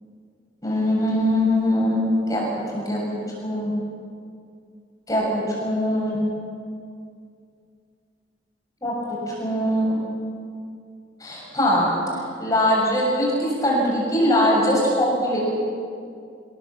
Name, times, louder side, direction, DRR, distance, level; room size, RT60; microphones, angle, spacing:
voice 1, 0.6-2.5 2.7-3.0 3.4-3.7 5.1-6.2 8.8-9.0 9.3-10.0 11.2-15.4, equal, 20° left, -4 dB, 6.8 m, -22 dB
27.5 x 17.0 x 7.5 m, 2.4 s
head